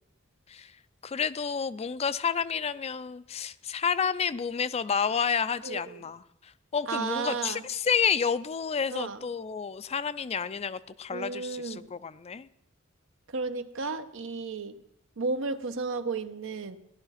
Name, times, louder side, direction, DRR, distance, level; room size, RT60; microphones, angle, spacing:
voice 1, 1.0-12.5, left 6 dB, 30° left, 15 dB, 0.4 m, -30 dB
voice 2, 5.6-6.0 6.9-7.6 8.9-9.2 11.1-11.9 13.3-14.8 15.2-16.8, right 4 dB, 65° right, 10 dB, 0.8 m, -33 dB
16.0 x 11.5 x 5.7 m, 0.85 s
head